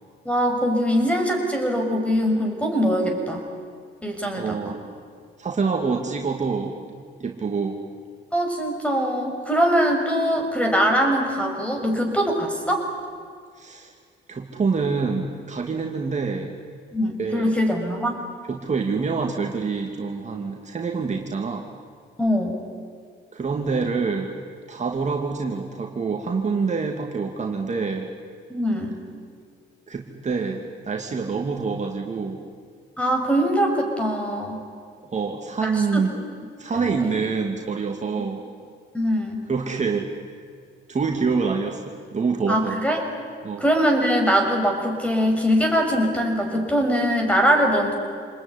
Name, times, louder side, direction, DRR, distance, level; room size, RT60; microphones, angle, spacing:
voice 1, 0.2-3.4 4.0-4.7 8.3-12.9 16.9-18.2 22.2-22.6 28.5-28.9 33.0-34.6 35.6-36.0 36.7-37.0 38.9-39.4 42.5-43.0 43.6-47.9, equal, 5° left, 3 dB, 6.5 m, -22 dB
voice 2, 4.3-4.8 5.4-6.9 7.2-7.8 13.6-13.9 14.3-16.5 17.2-17.6 18.5-21.7 23.3-24.3 24.7-28.1 29.9-32.4 35.1-36.2 36.6-38.4 39.5-40.1 40.9-42.8 43.4-43.6, right 4 dB, 35° right, 1 dB, 2.6 m, -26 dB
28.0 x 20.5 x 10.0 m, 2.1 s
cardioid pair, 90°, 20 cm